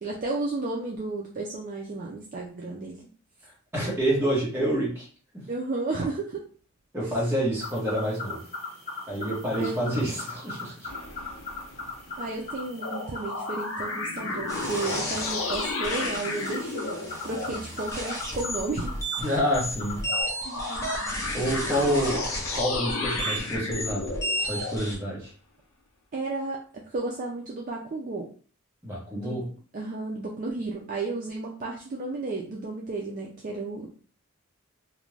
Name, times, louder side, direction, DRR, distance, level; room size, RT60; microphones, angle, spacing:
voice 1, 0.0-3.1 5.5-6.5 7.0-7.2 9.5-10.2 12.2-18.9 20.4-20.9 26.1-28.3 29.1-29.4 29.7-33.9, right 3 dB, 35° right, -1 dB, 0.3 m, -33 dB
voice 2, 3.7-5.1 5.3-5.4 6.9-8.4 9.1-10.9 19.2-20.0 21.3-22.2 22.5-24.1 24.4-25.3 28.8-29.4, equal, 10° right, -5 dB, 0.9 m, -28 dB
sound 1, 7.6-20.2, left 3 dB, 40° left, 1.0 m, -40 dB
sound 2, 10.9-12.5 12.8-17.6 20.0-24.8, left 3 dB, 70° left, 0.5 m, -33 dB
sound 3, 14.5-25.0, equal, 15° left, 0.5 m, -34 dB
2.5 x 2.1 x 3.1 m, 0.42 s
head